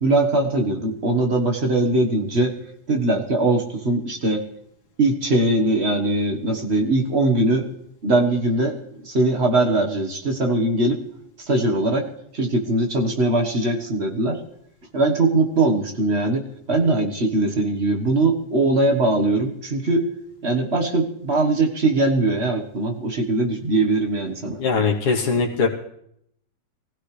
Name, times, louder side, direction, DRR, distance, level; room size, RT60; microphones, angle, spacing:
voice 1, 0.0-2.5 2.9-4.4 5.0-7.6 8.0-8.8 9.0-11.0 11.4-12.0 12.3-14.4 14.9-20.1 20.4-24.6, right 2 dB, 35° right, 2 dB, 1.6 m, -21 dB
voice 2, 24.6-25.7, left 4 dB, 60° left, -1 dB, 1.7 m, -20 dB
24.0 x 15.5 x 3.3 m, 0.73 s
omnidirectional pair, 2.0 m